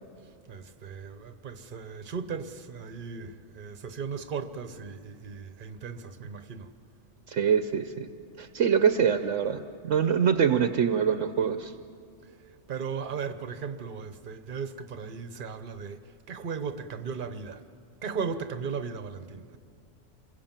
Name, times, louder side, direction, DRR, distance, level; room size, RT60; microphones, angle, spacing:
voice 1, 0.5-6.7 12.7-17.6 18.0-19.6, right 6 dB, 45° right, 1.0 m, -37 dB
voice 2, 7.3-8.1 8.4-11.7, right 7 dB, 70° right, 1.1 m, -24 dB
27.5 x 22.0 x 7.4 m
omnidirectional pair, 1.4 m